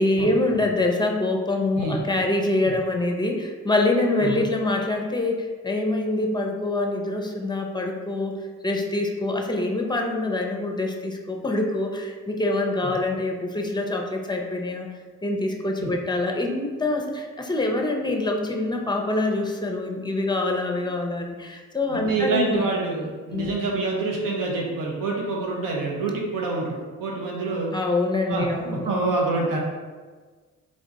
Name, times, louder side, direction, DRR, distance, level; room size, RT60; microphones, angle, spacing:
voice 1, 0.0-8.3 8.6-14.9 15.2-22.6 23.3-23.7 27.7-28.9, left 2 dB, 15° left, 2 dB, 0.6 m, -25 dB
voice 2, 21.9-27.7 28.3-29.6, right 3 dB, 75° right, -1 dB, 1.0 m, -27 dB
3.8 x 2.4 x 4.1 m, 1.4 s
supercardioid pair, 65°, 33 cm